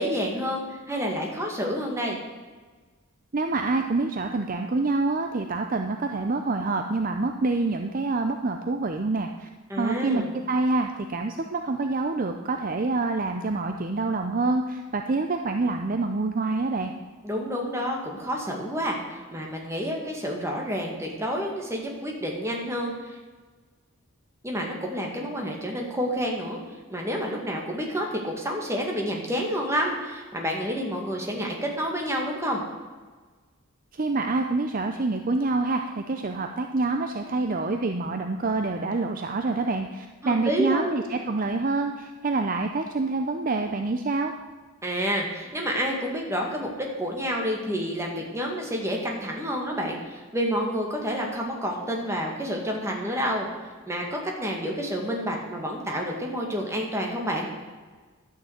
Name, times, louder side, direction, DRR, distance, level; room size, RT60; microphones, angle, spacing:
voice 1, 0.0-2.2 9.7-10.3 17.2-23.2 24.4-26.6 26.9-32.6 40.2-41.0 44.8-53.5 53.9-57.5, equal, 15° right, 0 dB, 2.0 m, -29 dB
voice 2, 3.3-9.5 9.8-16.9 33.9-44.3, right 3 dB, 40° right, 5 dB, 0.6 m, -26 dB
11.5 x 6.7 x 8.1 m, 1.4 s
head